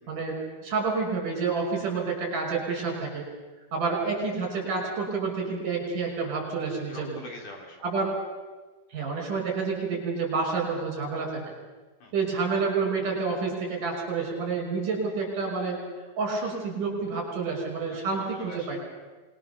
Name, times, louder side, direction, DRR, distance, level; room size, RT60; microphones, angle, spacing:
voice 1, 0.1-3.3 3.7-7.2 7.8-8.2 8.9-11.4 12.1-15.8 16.2-18.8, right 4 dB, 60° right, 1 dB, 7.5 m, -29 dB
voice 2, 6.9-7.9 12.0-12.1 18.1-18.8, left 2 dB, 55° left, 1 dB, 5.1 m, -43 dB
26.0 x 21.5 x 6.9 m, 1.3 s
omnidirectional pair, 4.3 m